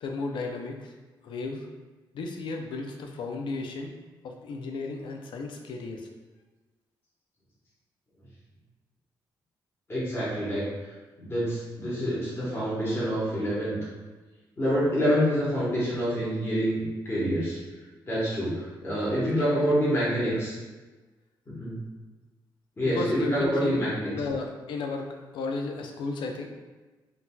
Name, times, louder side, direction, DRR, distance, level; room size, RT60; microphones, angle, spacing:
voice 1, 0.0-0.9 1.2-1.7 2.1-3.9 4.2-6.1 19.4-19.8 20.2-20.3 22.8-26.5, left 3 dB, 75° left, 3 dB, 0.4 m, -34 dB
voice 2, 9.9-10.6 11.2-13.8 14.6-17.6 18.1-20.5 21.5-21.7 22.8-24.1, equal, 30° left, -9 dB, 1.3 m, -27 dB
3.8 x 2.7 x 2.2 m, 1.2 s
cardioid pair, 75°, 8 cm